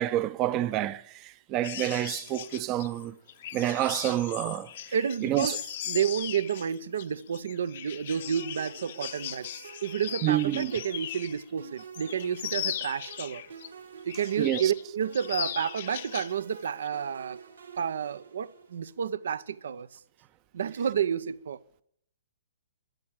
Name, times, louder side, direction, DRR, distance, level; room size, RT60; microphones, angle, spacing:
voice 1, 0.0-3.1 3.5-4.7 5.2-5.6 10.2-10.7 14.4-14.7, right 13 dB, 25° right, 0.7 m, -28 dB
sound 1, 1.6-11.4 11.8-13.7 14.1-14.8 15.1-16.4 16.6-16.9, left 12 dB, 50° left, 0.9 m, -38 dB
voice 2, 4.9-5.6 5.9-13.4 14.0-17.4 17.8-20.0 20.5-21.6, right 8 dB, 60° right, 0.7 m, -30 dB
sound 2, 8.1-18.8, right 6 dB, 75° right, 3.1 m, -48 dB
13.0 x 10.5 x 8.8 m
figure-of-eight pair, 125°, 0 cm